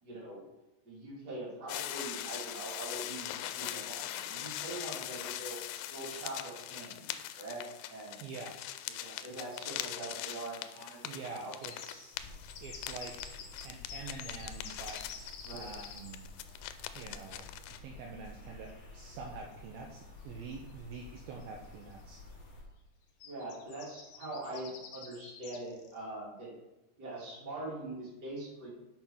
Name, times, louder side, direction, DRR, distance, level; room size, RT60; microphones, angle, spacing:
voice 1, 0.0-0.4 0.8-5.6 5.9-7.6 7.9-8.3 9.0-11.5 15.4-15.7 23.2-26.5 27.0-28.7, right 2 dB, 25° right, -6 dB, 3.0 m, -43 dB
sound 1, 1.7-17.8, left 13 dB, 90° left, 2.7 m, -41 dB
voice 2, 8.2-8.6 11.0-12.2 12.6-13.4 13.6-16.3 16.9-22.2, right 4 dB, 75° right, 1 dB, 2.4 m, -46 dB
sound 2, 11.6-16.2 18.7-18.8 19.1-19.2 20.5-20.6 20.9-21.4 21.9-22.1 23.2-26.0, left 6 dB, 70° left, 2.0 m, -49 dB
sound 3, 12.1-22.6, left 2 dB, 40° left, 2.2 m, -51 dB
7.1 x 6.0 x 5.5 m, 1.0 s
omnidirectional pair, 4.7 m